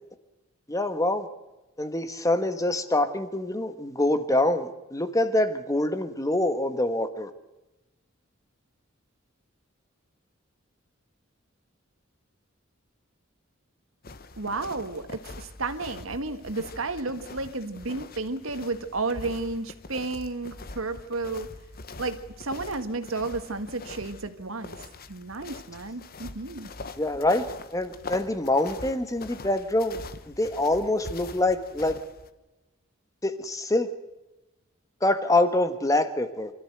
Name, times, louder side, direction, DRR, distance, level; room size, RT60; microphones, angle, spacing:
voice 1, 0.7-1.3 1.8-7.3 27.0-27.5 27.7-30.0 30.3-32.0 33.2-33.9 35.0-36.5, left 1 dB, 15° left, 10 dB, 1.4 m, -25 dB
sound 1, 14.0-32.3, left 3 dB, 45° left, 1.1 m, -43 dB
voice 2, 14.4-21.5 22.0-24.8 25.1-26.7, right 3 dB, 80° right, 9 dB, 1.7 m, -32 dB
25.0 x 14.0 x 8.0 m, 1.0 s
head